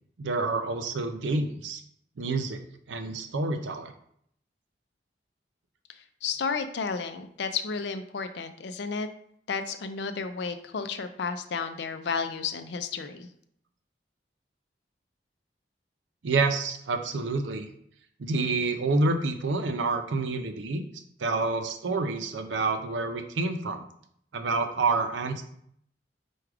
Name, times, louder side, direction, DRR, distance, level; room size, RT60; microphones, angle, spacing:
voice 1, 0.2-1.8 2.2-2.6 2.9-3.9 16.2-17.7 18.2-20.8 21.2-23.8 24.3-25.4, right 3 dB, 85° right, 7 dB, 0.5 m, -28 dB
voice 2, 6.2-9.1 9.5-13.3, left 5 dB, 70° left, 9 dB, 0.4 m, -32 dB
4.8 x 2.3 x 4.7 m, 0.68 s
head